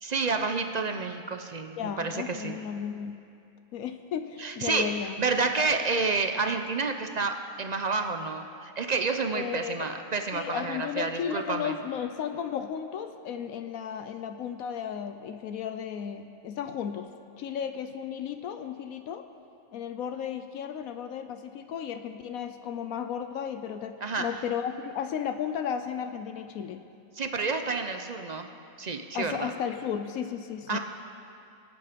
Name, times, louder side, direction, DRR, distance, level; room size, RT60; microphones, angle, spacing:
voice 1, 0.0-2.6 4.4-11.8 24.0-24.3 27.2-28.5 28.8-29.5 30.7-30.8, right 4 dB, 50° right, 6 dB, 0.5 m, -29 dB
voice 2, 1.8-3.1 3.7-5.2 9.3-9.9 10.3-17.1 17.4-19.2 19.7-26.8 29.1-30.8, left 8 dB, 80° left, 8 dB, 1.1 m, -34 dB
23.5 x 8.6 x 5.1 m, 2.5 s
omnidirectional pair, 1.5 m